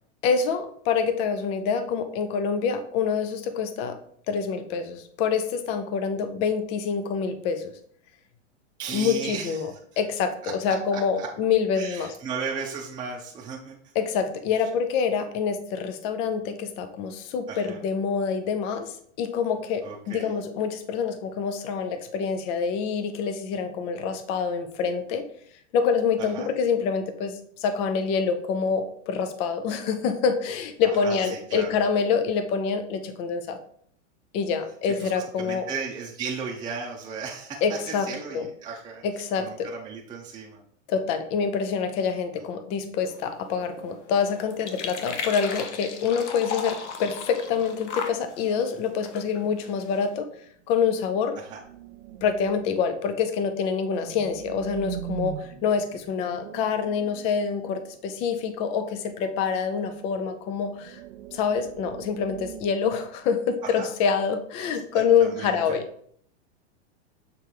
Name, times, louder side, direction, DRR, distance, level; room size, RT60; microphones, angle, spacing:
voice 1, 0.2-4.0 4.3-7.7 8.9-9.7 10.0-12.1 14.0-25.3 25.7-33.6 34.3-35.7 37.6-38.1 38.3-38.5 39.0-39.7 40.9-50.3 50.7-51.4 52.2-61.0 61.3-65.8, left 6 dB, 20° left, 9 dB, 0.3 m, -26 dB
voice 2, 8.8-10.0 10.4-11.3 11.8-13.9 14.6-14.7 17.5-17.8 19.8-20.3 26.2-26.5 30.8-31.8 35.0-39.0 39.4-40.6 51.4-51.6 63.6-63.9 64.6-65.8, right 5 dB, 10° right, -3 dB, 0.7 m, -36 dB
sound 1, 43.0-50.2, left 6 dB, 70° left, 1.1 m, -37 dB
sound 2, 49.9-50.2 50.5-50.6 51.3-52.9 53.5-58.3 59.8-60.2 60.5-63.5, right 12 dB, 65° right, 0.6 m, -41 dB
6.8 x 3.3 x 4.6 m, 0.62 s
supercardioid pair, 145°, 36 cm